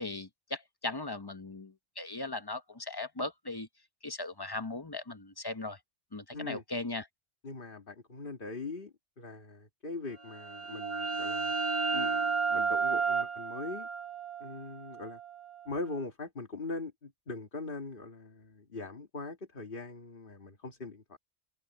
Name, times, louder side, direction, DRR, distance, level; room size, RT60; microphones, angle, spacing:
voice 1, 0.0-3.7 4.0-5.8 6.1-7.1, left 2 dB, 25° left, 0.9 m, -38 dB
voice 2, 7.4-11.5 11.9-13.9 14.4-15.2 15.7-21.2, left 3 dB, 50° left, 2.3 m, -41 dB
sound 1, 10.2-15.7, right 5 dB, 30° right, 1.2 m, -32 dB
open air
omnidirectional pair, 1.1 m